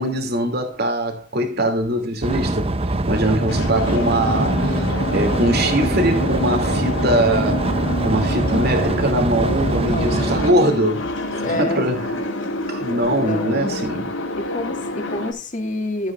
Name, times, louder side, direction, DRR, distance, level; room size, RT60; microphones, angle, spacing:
voice 1, 0.0-2.7 3.1-11.1 11.4-12.2 12.7-14.1, right 1 dB, 50° right, 2.6 m, -22 dB
sound 1, 2.2-10.5, right 2 dB, 30° right, 0.7 m, -23 dB
voice 2, 3.2-3.5 9.9-10.4 11.3-11.8 13.0-13.8 14.4-16.1, left 2 dB, 40° left, 2.2 m, -28 dB
sound 2, 3.5-15.3, left 1 dB, 75° left, 3.2 m, -27 dB
13.5 x 8.8 x 2.5 m
head